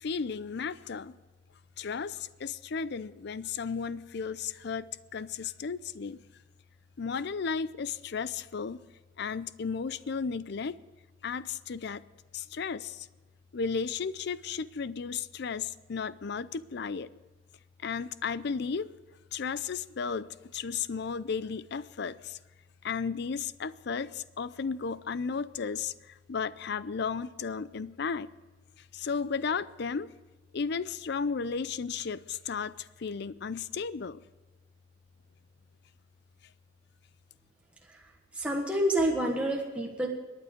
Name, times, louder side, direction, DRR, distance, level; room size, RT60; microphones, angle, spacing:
voice 1, 0.0-1.1 1.8-6.2 7.0-8.8 9.2-10.8 11.2-12.0 12.3-13.1 13.5-17.1 17.8-18.9 19.3-22.4 22.8-25.9 26.3-28.3 28.9-30.1 30.5-34.2, left 5 dB, 60° left, 17 dB, 0.5 m, -34 dB
voice 2, 38.3-40.1, right 1 dB, 5° right, -2 dB, 1.4 m, -28 dB
22.5 x 9.5 x 5.2 m, 1.3 s
head